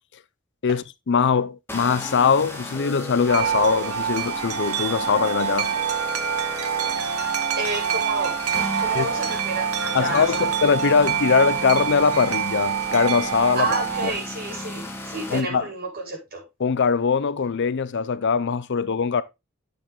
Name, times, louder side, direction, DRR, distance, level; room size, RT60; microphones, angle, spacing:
voice 1, 0.6-5.7 8.9-9.1 9.9-13.7 14.0-14.1 15.3-15.7 16.6-19.2, left 5 dB, 55° left, 0.5 m, -21 dB
sound 1, 1.7-15.4, left 1 dB, 10° left, 1.7 m, -35 dB
Wind chime, 3.3-14.1, right 8 dB, 90° right, 1.2 m, -26 dB
voice 2, 7.6-8.3 8.8-10.6 13.6-16.4, right 2 dB, 45° right, 4.9 m, -30 dB
9.6 x 6.8 x 3.7 m
head